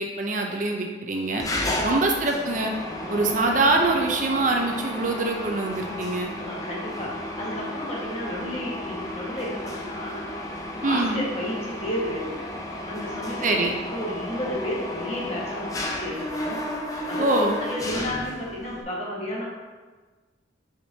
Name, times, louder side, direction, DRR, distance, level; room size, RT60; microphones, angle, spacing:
voice 1, 0.0-1.5 1.8-2.7 3.1-6.3 10.8-11.2 13.4-13.7 17.2-17.6, right 2 dB, 40° right, 2 dB, 0.6 m, -24 dB
Mechanisms, 1.4-18.8, left 1 dB, 20° left, 0.6 m, -33 dB
voice 2, 1.6-1.9 2.9-3.4 6.3-10.4 10.8-12.4 12.9-13.6 13.9-16.6 17.1-17.2 17.6-19.4, left 1 dB, 35° left, -5 dB, 1.6 m, -32 dB
7.2 x 5.1 x 2.8 m, 1.3 s
head